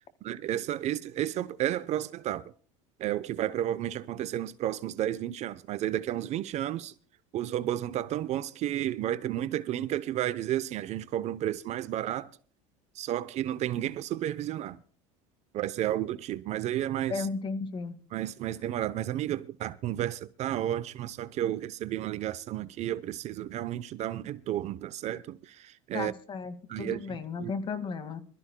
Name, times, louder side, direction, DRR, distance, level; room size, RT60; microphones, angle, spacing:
voice 1, 0.2-2.5 3.0-6.9 7.3-12.3 12.9-14.8 15.5-17.3 18.1-26.1 26.7-27.5, right 12 dB, 45° right, 0.8 m, -32 dB
voice 2, 17.1-18.0 25.9-28.2, left 4 dB, 30° left, 1.9 m, -34 dB
26.0 x 13.5 x 2.2 m
supercardioid pair, 125°, 16 cm